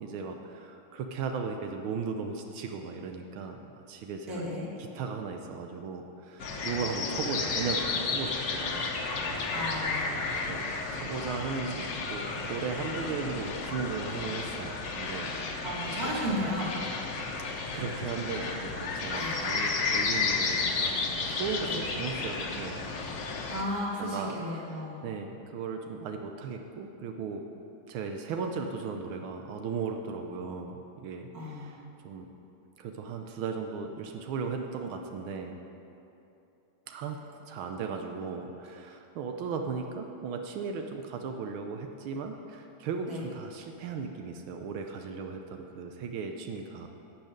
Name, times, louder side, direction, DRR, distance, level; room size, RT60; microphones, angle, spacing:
voice 1, 0.0-3.6 3.9-4.4 4.9-9.6 10.5-10.7 10.9-15.3 17.4-22.8 24.0-24.3 25.0-27.4 27.9-32.3 32.8-35.6 36.9-46.9, right 5 dB, 85° right, 4 dB, 1.6 m, -36 dB
voice 2, 4.3-4.7 9.5-10.2 15.6-16.8 19.2-19.4 21.7-21.8 23.2-25.0 31.3-31.8 43.1-43.2, equal, 50° right, -5 dB, 2.6 m, -34 dB
sound 1, 6.4-23.6, left 4 dB, 65° left, 1.6 m, -32 dB
12.0 x 5.7 x 8.8 m, 2.8 s
omnidirectional pair, 2.2 m